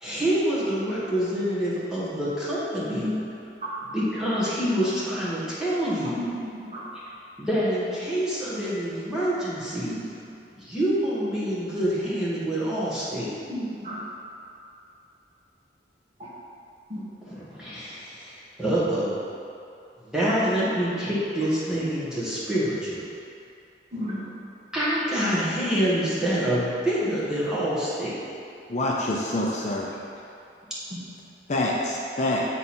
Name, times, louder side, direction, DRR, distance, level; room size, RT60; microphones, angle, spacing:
voice 1, 0.0-3.1 3.9-6.2 7.4-9.9 10.6-13.3 17.5-19.1 20.0-23.0 24.7-28.2, equal, 5° right, -10 dB, 1.6 m, -26 dB
voice 2, 6.2-6.8 9.9-10.0 13.5-14.0 16.2-16.3 16.9-17.0 20.6-20.7 23.9-24.3 30.9-31.0, equal, 35° right, -7 dB, 1.4 m, -33 dB
voice 3, 28.7-29.9 31.5-32.4, left 1 dB, 40° left, -3 dB, 0.6 m, -26 dB
8.1 x 4.0 x 4.3 m, 2.6 s
head